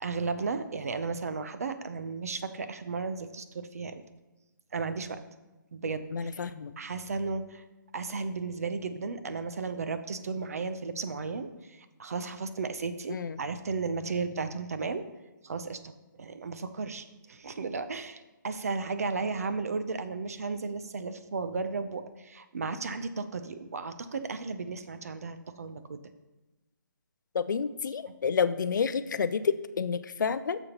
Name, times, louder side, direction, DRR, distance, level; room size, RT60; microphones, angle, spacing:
voice 1, 0.0-4.0 4.7-5.2 5.7-7.6 7.9-15.0 15.4-15.9 16.2-26.0, right 4 dB, 50° right, 10 dB, 0.5 m, -34 dB
voice 2, 6.1-6.8 13.1-13.4 27.3-30.6, left 6 dB, 65° left, 13 dB, 0.4 m, -29 dB
10.5 x 6.9 x 2.9 m, 1.1 s
hypercardioid pair, 175°, 11 cm